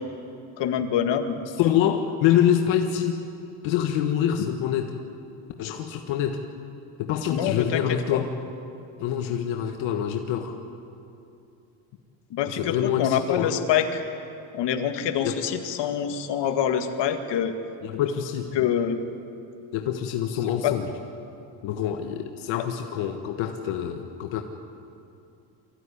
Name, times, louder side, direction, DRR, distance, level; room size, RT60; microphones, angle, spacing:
voice 1, 0.6-1.4 7.3-7.8 8.1-8.2 12.3-14.0 14.5-17.5 18.5-19.0 20.6-20.7, left 9 dB, 65° left, 6 dB, 2.0 m, -25 dB
voice 2, 1.6-3.2 3.6-4.9 5.6-6.4 7.0-8.3 9.0-10.5 12.5-13.6 15.2-15.5 17.8-18.5 19.7-20.9 21.6-24.4, left 10 dB, 85° left, 4 dB, 1.5 m, -25 dB
24.5 x 15.5 x 9.9 m, 2.7 s
cardioid pair, 115°, 45 cm